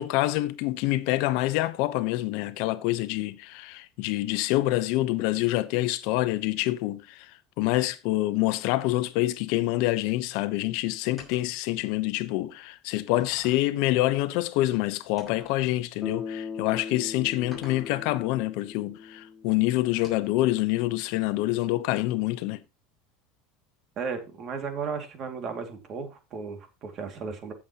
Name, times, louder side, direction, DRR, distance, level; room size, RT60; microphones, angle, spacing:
voice 1, 0.0-7.3 7.6-22.6, left 17 dB, 65° left, 0.8 m, -26 dB
sound 1, 11.2-11.6 12.4-12.5 13.2-13.7 15.2-15.6 17.5-18.0 20.0-20.4, left 2 dB, ahead, 5.9 m, -49 dB
Bass guitar, 16.0-20.0, left 5 dB, 20° left, 2.0 m, -39 dB
voice 2, 24.0-27.5, right 5 dB, 40° right, 2.3 m, -35 dB
15.0 x 7.1 x 2.9 m
supercardioid pair, 135°, 0 cm